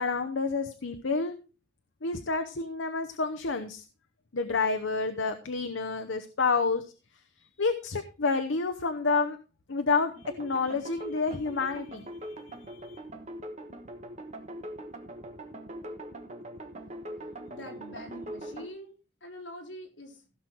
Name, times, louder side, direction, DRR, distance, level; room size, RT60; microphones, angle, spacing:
voice 1, 0.0-1.4 2.0-3.8 4.3-6.9 7.6-9.4 9.7-13.0, left 4 dB, 85° left, 7 dB, 0.9 m, -29 dB
sound 1, 10.1-18.7, right 1 dB, 35° right, 1.4 m, -42 dB
voice 2, 17.5-18.9 19.2-20.3, equal, 70° left, 1 dB, 3.8 m, -44 dB
16.0 x 6.3 x 4.5 m, 0.34 s
head